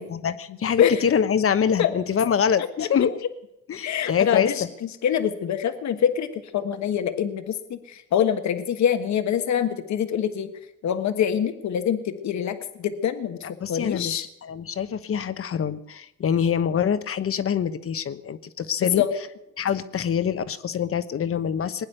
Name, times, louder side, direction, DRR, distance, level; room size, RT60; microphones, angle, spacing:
voice 1, 0.0-3.2 3.7-4.7 13.6-19.0 19.6-21.9, left 7 dB, 45° left, 12 dB, 1.1 m, -25 dB
voice 2, 3.8-4.6 5.0-10.5 10.8-13.4 13.7-14.2 18.8-19.1, left 9 dB, 65° left, 9 dB, 1.4 m, -24 dB
20.5 x 9.5 x 6.8 m, 0.87 s
cardioid pair, 90°, 30 cm